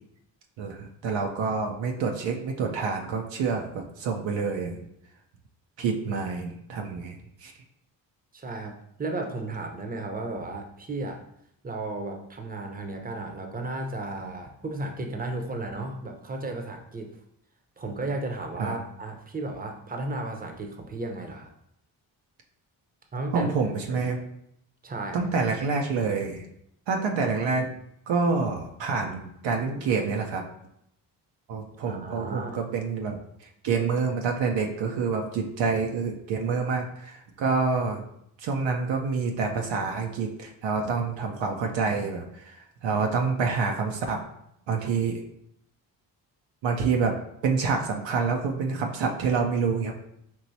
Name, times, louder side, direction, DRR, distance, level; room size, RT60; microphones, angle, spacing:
voice 1, 0.6-4.8 5.8-7.5 18.6-18.8 23.3-24.2 25.1-26.4 26.9-27.8 28.1-30.4 31.5-38.0 38.4-44.2 44.7-45.2 46.6-47.1 47.4-49.9, right 4 dB, 65° right, 2 dB, 0.7 m, -27 dB
voice 2, 8.3-11.2 11.6-17.2 17.8-21.5 23.1-23.5 23.9-24.1 24.8-25.2 31.8-32.6, right 2 dB, 20° right, 3 dB, 0.8 m, -34 dB
4.6 x 2.9 x 2.7 m, 0.75 s
hypercardioid pair, 45°, 48 cm